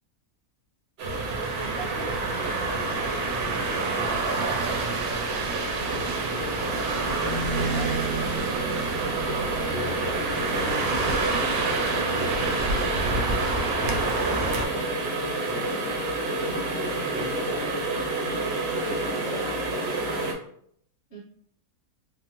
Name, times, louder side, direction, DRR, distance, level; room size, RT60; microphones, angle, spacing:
sound 1, 1.0-20.3, right 2 dB, 60° right, 0.7 m, -30 dB
sound 2, 1.0-14.7, right 3 dB, 90° right, 1.1 m, -29 dB
voice 1, 1.6-2.1 7.5-8.9 21.1-21.2, right 4 dB, 30° left, -7 dB, 1.3 m, -40 dB
voice 2, 3.7-4.1 9.6-15.1 15.4-15.8 16.2-18.0 18.8-20.1, left 1 dB, 70° left, -6 dB, 1.5 m, -40 dB
3.5 x 2.0 x 2.9 m, 0.66 s
omnidirectional pair, 1.6 m